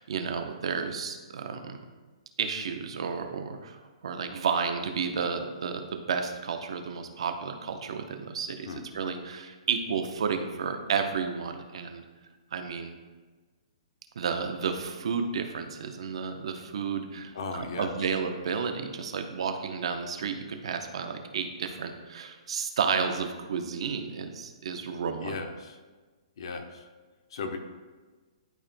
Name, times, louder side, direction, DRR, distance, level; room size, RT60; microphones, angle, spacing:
voice 1, 0.0-1.8 2.4-3.8 4.0-8.7 8.9-12.0 12.5-12.9 14.1-25.4, right 6 dB, 55° right, 6 dB, 0.8 m, -32 dB
voice 2, 17.3-18.2 25.2-25.8 26.4-26.9 27.3-27.6, left 4 dB, 50° left, 5 dB, 0.8 m, -37 dB
12.0 x 4.2 x 2.2 m, 1.3 s
hypercardioid pair, 175°, 3 cm